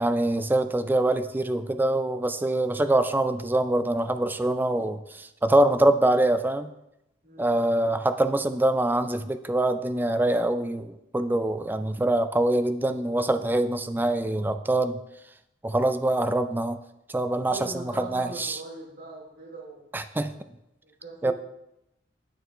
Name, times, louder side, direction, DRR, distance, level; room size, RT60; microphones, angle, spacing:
voice 1, 0.0-6.7 7.4-15.0 15.6-16.8 17.1-18.6 19.9-20.3 21.2-21.3, right 1 dB, 10° right, 10 dB, 0.3 m, -24 dB
voice 2, 7.2-7.6 17.4-19.8 20.8-21.3, right 1 dB, 55° right, -3 dB, 2.6 m, -41 dB
8.9 x 6.6 x 3.1 m, 0.86 s
head